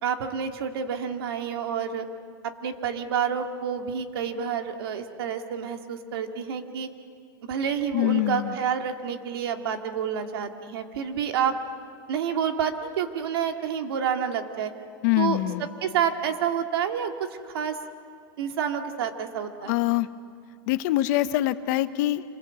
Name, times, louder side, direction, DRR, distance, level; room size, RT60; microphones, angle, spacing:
voice 1, 0.0-2.1 2.4-6.9 7.4-11.6 12.1-14.7 15.2-17.1 17.5-17.8 18.4-19.8, right 7 dB, 85° right, 5 dB, 2.1 m, -29 dB
voice 2, 7.9-8.6 15.0-15.7 19.6-20.1 20.7-22.2, left 16 dB, 50° left, 12 dB, 0.9 m, -24 dB
26.5 x 20.5 x 8.2 m, 2.3 s
supercardioid pair, 165°, 12 cm